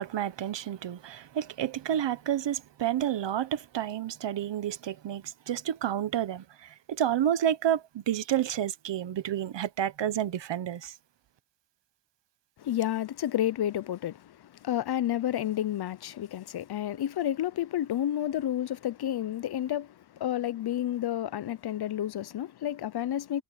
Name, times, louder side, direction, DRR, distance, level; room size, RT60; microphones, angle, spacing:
voice 1, 0.0-11.0, right 10 dB, 70° right, 1.2 m, -30 dB
voice 2, 12.6-23.4, left 11 dB, 60° left, 0.7 m, -30 dB
wide cardioid pair, 110°, 45 cm